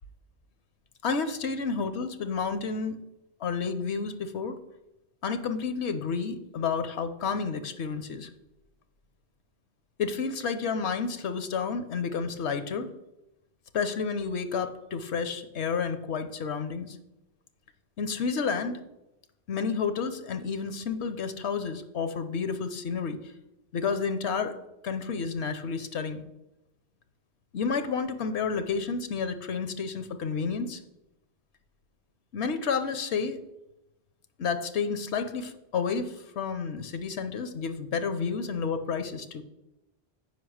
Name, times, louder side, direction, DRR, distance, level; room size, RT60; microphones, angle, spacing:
voice 1, 1.0-3.0 3.4-4.6 5.2-8.3 10.0-12.9 13.7-17.0 18.0-18.8 19.5-23.2 23.7-24.5 24.8-26.2 27.5-30.8 32.3-33.4 34.4-39.4, left 5 dB, 80° left, 9 dB, 1.1 m, -30 dB
7.9 x 5.3 x 6.3 m, 0.93 s
omnidirectional pair, 1.1 m